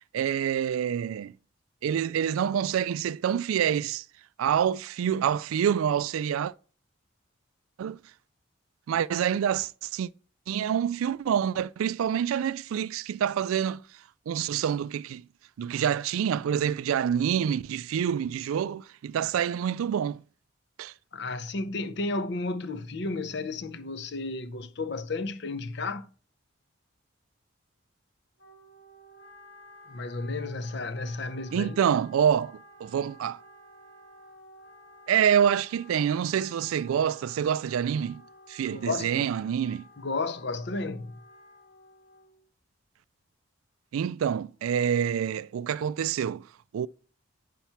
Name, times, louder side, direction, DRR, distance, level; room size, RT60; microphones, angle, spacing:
voice 1, 0.1-1.3 1.8-4.0 4.4-6.5 7.8-8.0 8.9-10.1 10.5-13.8 14.3-15.3 15.6-20.2 20.8-20.9 31.5-33.4 35.1-38.2 38.5-39.8 43.9-46.5 46.7-46.9, right 8 dB, 90° right, 0.3 m, -27 dB
voice 2, 21.1-26.1 29.9-31.8 38.7-39.3 40.0-41.1, left 3 dB, 55° left, 0.7 m, -33 dB
Wind instrument woodwind instrument, 28.4-42.4, left 1 dB, 75° left, 2.6 m, -53 dB
9.2 x 5.7 x 4.5 m
head